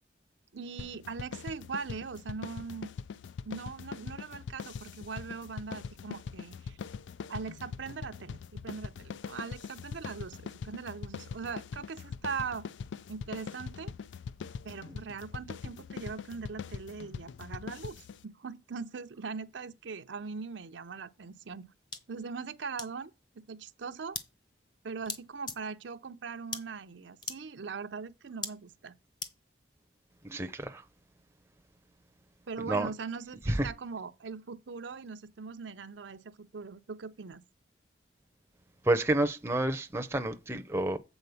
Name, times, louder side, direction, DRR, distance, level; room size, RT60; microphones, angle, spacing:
voice 1, 0.5-2.9 3.5-6.8 7.3-12.7 13.1-13.9 14.6-21.7 22.1-24.2 24.8-29.0 32.5-37.4, right 5 dB, 80° right, 0.6 m, -41 dB
sound 1, 0.8-18.2, left 6 dB, 80° left, 0.4 m, -42 dB
sound 2, 21.9-22.0 22.8-22.9 24.1-24.2 25.1-25.2 25.5-25.6 26.5-26.6 27.2-27.4 28.4-28.5 29.2-29.3, left 4 dB, 25° left, 0.9 m, -36 dB
voice 2, 30.2-30.8 32.7-32.9 33.6-33.7 38.9-41.0, right 2 dB, 15° right, 0.6 m, -29 dB
7.9 x 4.2 x 6.9 m
head